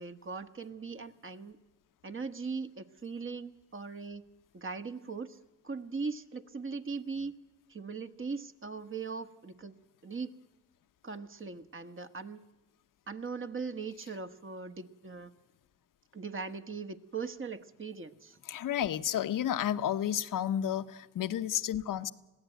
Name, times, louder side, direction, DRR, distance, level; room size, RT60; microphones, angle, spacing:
voice 1, 0.0-1.6 2.0-4.2 4.5-5.4 5.6-7.3 7.7-9.8 10.0-10.3 11.0-12.4 13.1-15.3 16.1-18.4, right 4 dB, 40° right, 9 dB, 1.4 m, -39 dB
voice 2, 18.5-22.1, left 10 dB, 80° left, 13 dB, 0.8 m, -31 dB
21.0 x 16.0 x 9.1 m, 1.1 s
cardioid pair, 60°, 32 cm